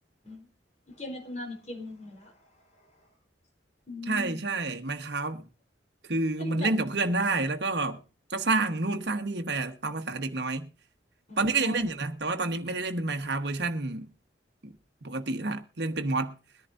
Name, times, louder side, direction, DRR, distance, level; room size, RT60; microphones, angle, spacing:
voice 1, 0.9-3.1 3.9-4.4 6.4-6.7 11.3-11.9, left 1 dB, 40° left, 4.0 m, -40 dB
voice 2, 4.1-5.5 6.0-8.0 8.3-10.7 11.4-14.1 14.6-14.7 15.0-16.3, right 3 dB, 65° right, 1.3 m, -29 dB
22.5 x 10.5 x 2.6 m
head